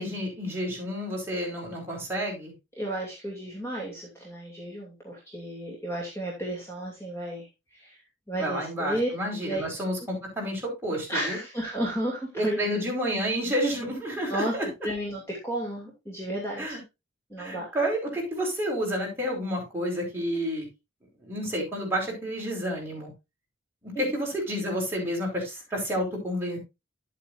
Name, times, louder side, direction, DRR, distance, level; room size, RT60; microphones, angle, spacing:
voice 1, 0.0-2.5 8.4-11.4 12.3-14.7 16.6-16.8 17.4-20.6 21.2-23.1 23.8-26.6, equal, 10° right, -3 dB, 4.6 m, -30 dB
voice 2, 2.8-7.5 7.7-8.0 8.3-9.1 9.4-9.6 11.1-12.6 14.2-14.5 14.8-16.8 17.3-17.7 23.9-24.1, right 1 dB, 15° left, -3 dB, 2.7 m, -32 dB
11.0 x 8.5 x 2.6 m, 0.24 s
head